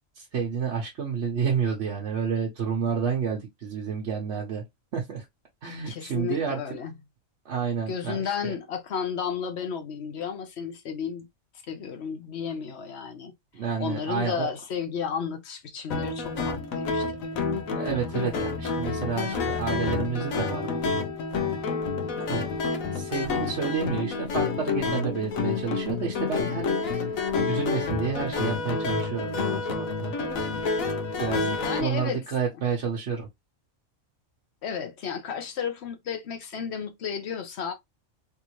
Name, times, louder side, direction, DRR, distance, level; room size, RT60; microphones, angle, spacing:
voice 1, 0.1-4.6 4.9-5.2 5.6-6.6 7.4-8.5 13.5-14.5 17.7-21.0 22.2-22.4 22.9-27.0 27.5-30.1 31.2-31.5 31.8-33.3, right 6 dB, 60° right, 1.1 m, -30 dB
voice 2, 5.9-6.9 7.9-11.3 11.7-17.3 31.6-32.2 34.6-37.7, left 7 dB, 55° left, 1.1 m, -33 dB
sound 1, 15.9-31.8, left 4 dB, 90° left, 1.2 m, -29 dB
3.5 x 2.6 x 3.0 m
omnidirectional pair, 1.4 m